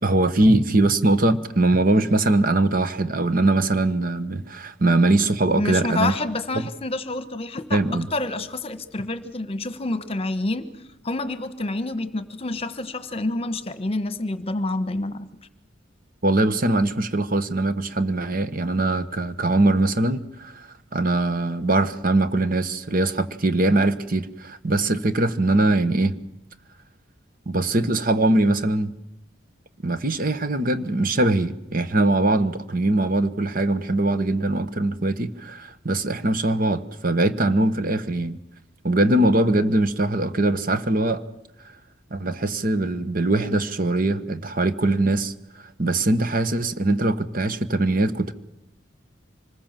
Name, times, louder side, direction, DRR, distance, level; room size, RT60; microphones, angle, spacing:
voice 1, 0.0-6.1 6.5-6.7 7.7-8.1 16.2-26.1 27.5-28.9 29.8-38.4 38.8-41.2 42.1-45.3 45.8-48.3, right 2 dB, 45° right, 12 dB, 1.2 m, -22 dB
voice 2, 5.6-10.7 11.0-15.3, left 2 dB, 30° left, 12 dB, 1.3 m, -28 dB
25.5 x 20.5 x 7.5 m, 0.85 s
head